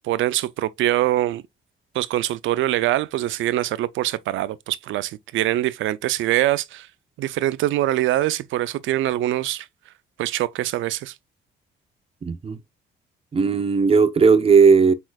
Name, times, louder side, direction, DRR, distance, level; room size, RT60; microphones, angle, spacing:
voice 1, 0.0-1.4 1.9-6.9 7.2-9.7 10.2-11.1, right 14 dB, 75° right, 0.4 m, -23 dB
voice 2, 12.2-12.6 13.3-14.9, right 5 dB, 30° right, 0.5 m, -16 dB
4.5 x 4.3 x 2.2 m
cardioid pair, 90°, 20 cm